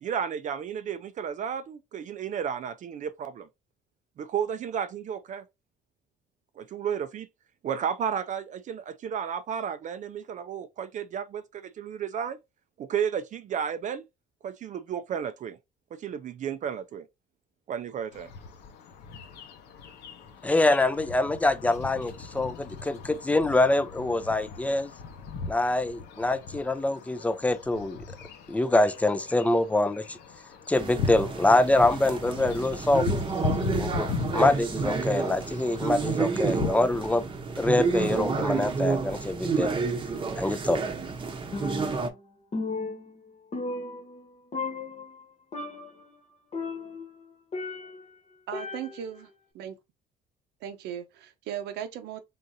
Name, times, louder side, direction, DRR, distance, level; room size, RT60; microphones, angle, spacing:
voice 1, 0.0-3.5 4.2-5.4 6.6-7.3 7.6-12.4 12.8-14.0 14.4-15.6 15.9-17.1 17.7-18.3, right 8 dB, 45° right, 0.5 m, -33 dB
sound 1, 18.1-36.7, left 5 dB, 80° left, 0.9 m, -38 dB
voice 2, 20.4-24.9 25.5-28.0 28.5-30.2 30.7-33.1 33.8-37.3 37.6-39.7 40.4-40.8, left 2 dB, 10° left, 0.5 m, -25 dB
sound 2, 30.7-42.1, right 5 dB, 30° right, 0.9 m, -30 dB
Percussion, 41.5-42.2 42.5-44.3 44.5-45.2 45.5-46.0 46.5-48.1 48.5-49.2, left 3 dB, 40° left, 1.1 m, -35 dB
voice 3, 48.5-49.3 49.5-49.8 50.6-52.2, right 9 dB, 85° right, 0.8 m, -37 dB
4.0 x 3.8 x 2.6 m
cardioid pair, 110°, 17 cm